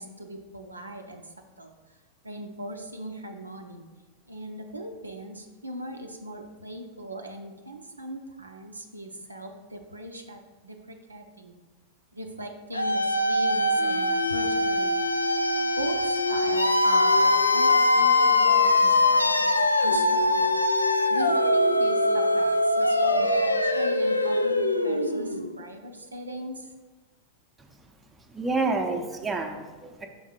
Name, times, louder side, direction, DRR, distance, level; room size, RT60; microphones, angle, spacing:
voice 1, 0.0-1.7 2.2-3.8 4.3-11.5 12.1-15.1 15.8-19.5 19.8-20.5 21.1-26.7, right 1 dB, 80° right, 4 dB, 0.5 m, -39 dB
sound 1, 12.7-25.6, left 2 dB, 85° left, 0.3 m, -22 dB
voice 2, 28.3-30.1, right 3 dB, 15° right, 3 dB, 0.6 m, -28 dB
5.4 x 3.6 x 5.1 m, 1.3 s
figure-of-eight pair, 90°, 0 cm